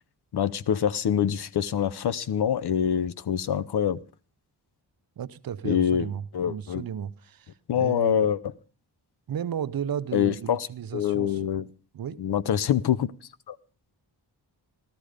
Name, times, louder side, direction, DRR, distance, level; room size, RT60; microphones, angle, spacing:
voice 1, 0.3-4.0 5.6-6.1 6.3-6.8 7.7-8.4 10.1-10.7 10.9-11.6 12.2-13.1 13.5-13.6, left 9 dB, 65° left, 0.7 m, -25 dB
voice 2, 5.2-8.3 9.3-11.4 11.9-12.2, right 9 dB, 55° right, 0.7 m, -34 dB
13.5 x 13.0 x 5.0 m
wide cardioid pair, 125°, 43 cm